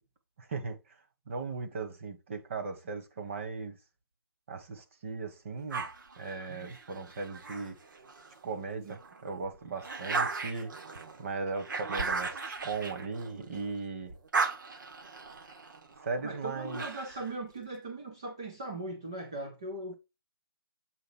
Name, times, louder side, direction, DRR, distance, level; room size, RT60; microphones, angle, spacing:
voice 1, 0.4-0.8 1.3-3.8 4.5-5.9 6.2-7.8 8.4-10.7 11.2-14.1 16.0-16.9, right 4 dB, 30° right, 1.5 m, -37 dB
sound 1, 5.7-8.4 8.9-13.7 14.0-17.3, right 4 dB, 55° right, 1.9 m, -37 dB
voice 2, 16.2-19.9, right 2 dB, 10° right, 0.3 m, -39 dB
8.0 x 3.9 x 5.7 m
hypercardioid pair, 175°, 13 cm